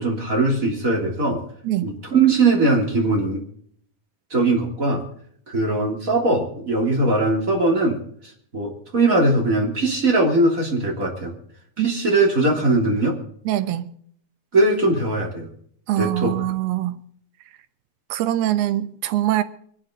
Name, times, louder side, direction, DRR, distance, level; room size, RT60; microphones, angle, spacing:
voice 1, 0.0-1.4 1.8-3.4 4.3-5.0 5.5-8.0 8.5-11.3 11.8-13.2 14.5-15.5 16.0-16.4, right 2 dB, 25° right, 3.0 m, -20 dB
voice 2, 13.5-13.9 15.9-17.0 18.1-19.4, right 13 dB, 85° right, 3.0 m, -23 dB
24.5 x 11.5 x 3.8 m
omnidirectional pair, 4.4 m